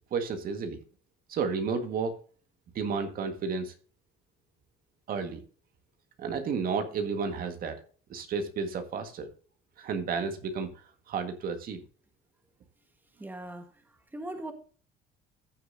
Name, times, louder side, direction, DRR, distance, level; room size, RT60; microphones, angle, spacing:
voice 1, 0.1-0.8 1.3-2.1 2.8-3.7 5.1-5.4 6.2-7.8 8.1-9.3 9.8-10.7 11.1-11.8, right 5 dB, 60° right, 1.7 m, -32 dB
voice 2, 13.2-13.7 14.1-14.5, right 1 dB, 10° right, 1.5 m, -39 dB
15.0 x 6.8 x 2.7 m
cardioid pair, 110°, 17 cm